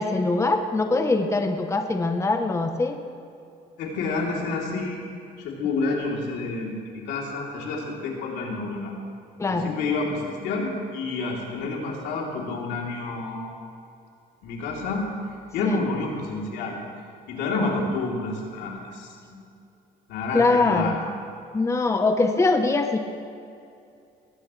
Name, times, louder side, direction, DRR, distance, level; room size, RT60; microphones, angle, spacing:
voice 1, 0.0-3.0 9.4-9.7 15.6-15.9 17.6-17.8 20.3-21.0 21.5-23.0, left 3 dB, 15° left, 5 dB, 1.0 m, -23 dB
voice 2, 3.8-5.1 5.4-8.9 9.5-13.6 14.4-15.0 15.5-16.8 17.3-19.4 20.1-21.0, left 3 dB, 85° left, -2 dB, 3.4 m, -29 dB
21.0 x 16.0 x 3.3 m, 2.5 s
cardioid pair, 110°, 17 cm